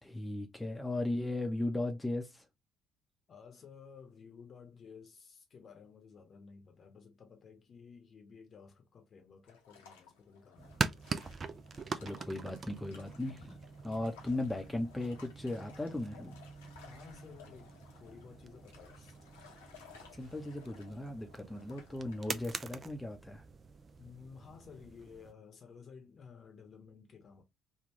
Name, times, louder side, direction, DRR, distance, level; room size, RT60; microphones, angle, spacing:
voice 1, 0.0-2.4 11.9-13.6 13.8-16.4 20.1-23.4, left 2 dB, 10° left, 0.7 m, -37 dB
voice 2, 3.3-11.0 16.7-19.1 24.0-27.4, left 6 dB, 45° left, 0.9 m, -54 dB
sound 1, 9.5-22.6, left 6 dB, 80° left, 0.9 m, -59 dB
sound 2, 10.6-25.3, right 5 dB, 40° right, 0.5 m, -44 dB
3.6 x 2.3 x 3.0 m
figure-of-eight pair, 50°, 0 cm